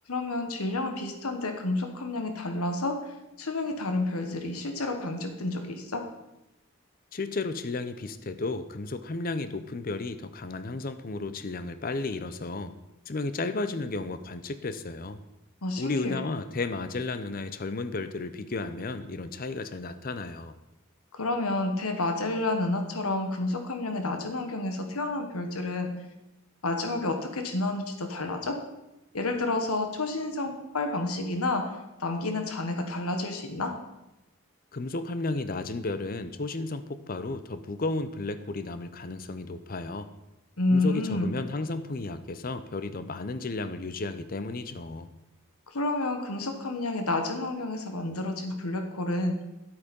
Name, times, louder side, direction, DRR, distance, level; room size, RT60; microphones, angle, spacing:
voice 1, 0.1-6.0 15.6-16.2 21.1-25.9 26.6-28.6 29.1-33.7 40.6-41.4 45.7-49.4, left 2 dB, 90° left, 5 dB, 1.3 m, -30 dB
voice 2, 7.1-12.7 13.1-15.2 15.8-20.5 34.7-40.1 40.7-45.1, left 3 dB, 40° left, 11 dB, 0.6 m, -33 dB
11.5 x 8.4 x 5.3 m, 0.94 s
head